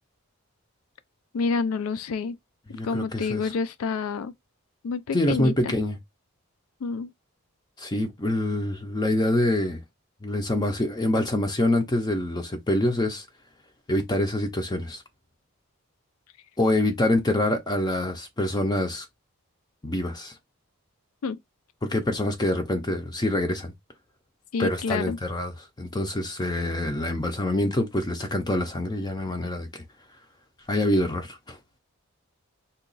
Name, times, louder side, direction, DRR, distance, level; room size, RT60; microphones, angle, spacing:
voice 1, 1.3-2.4 2.8-4.3 4.8-5.7 6.8-7.1 21.2-21.4 24.5-25.2, left 5 dB, 75° left, 0.4 m, -28 dB
voice 2, 2.7-3.5 5.1-6.0 7.8-9.8 10.2-13.3 13.9-15.0 16.6-19.1 19.8-20.3 21.8-23.7 24.6-25.5 25.8-29.7 30.7-31.6, left 1 dB, 20° left, 0.5 m, -25 dB
2.8 x 2.3 x 3.9 m
head